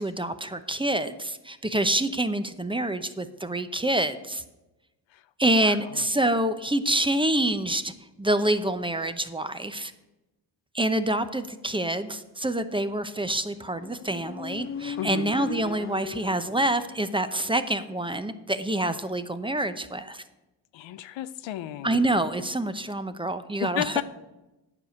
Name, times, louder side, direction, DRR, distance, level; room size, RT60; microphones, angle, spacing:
voice 1, 0.0-4.4 5.4-7.9 8.2-9.9 10.7-20.2 21.8-24.0, right 1 dB, 10° right, 10 dB, 0.8 m, -27 dB
voice 2, 5.6-6.0 15.0-15.3 20.7-22.0 23.6-24.0, left 13 dB, 80° left, 14 dB, 0.6 m, -33 dB
Motorcycle, 13.6-17.2, left 6 dB, 30° left, 0.6 m, -38 dB
9.9 x 4.9 x 8.0 m, 1.0 s
supercardioid pair, 55°, 45 cm